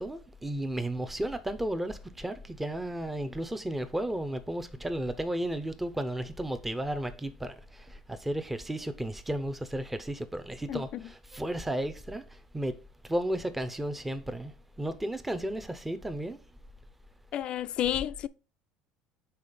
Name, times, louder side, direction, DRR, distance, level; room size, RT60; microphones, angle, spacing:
voice 1, 0.0-7.6 8.1-12.2 12.5-12.8 13.1-14.5 14.8-16.4, right 1 dB, 10° right, 0.6 m, -33 dB
voice 2, 10.7-11.0 17.3-18.3, left 12 dB, 50° left, 0.3 m, -31 dB
5.5 x 3.8 x 5.0 m
supercardioid pair, 100°, 2 cm